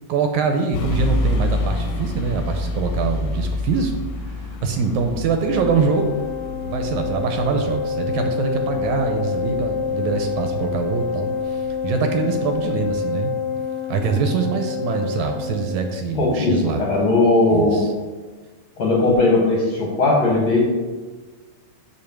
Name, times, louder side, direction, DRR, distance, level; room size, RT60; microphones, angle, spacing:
voice 1, 0.1-3.9 4.2-6.2 6.7-13.4 13.9-16.8 17.5-17.9, right 5 dB, 80° right, 5 dB, 1.8 m, -24 dB
sound 1, 0.7-12.7, left 2 dB, 75° left, 1.7 m, -29 dB
Organ, 5.3-16.1, left 5 dB, 20° left, 0.8 m, -27 dB
voice 2, 16.1-17.8 18.8-20.7, left 2 dB, 60° left, -3 dB, 1.4 m, -18 dB
5.3 x 4.7 x 5.8 m, 1.3 s
omnidirectional pair, 3.6 m